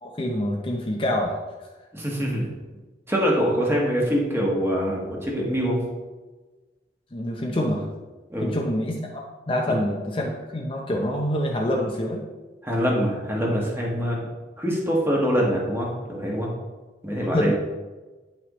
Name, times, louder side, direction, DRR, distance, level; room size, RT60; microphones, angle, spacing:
voice 1, 0.0-1.4 7.1-7.9 8.4-12.2 17.2-17.5, left 1 dB, 30° left, 0 dB, 0.7 m, -26 dB
voice 2, 1.9-2.5 3.1-5.8 8.3-8.5 12.6-14.2 14.6-16.5 17.0-17.5, equal, 15° right, -3 dB, 1.5 m, -24 dB
9.8 x 6.0 x 3.1 m, 1.2 s
head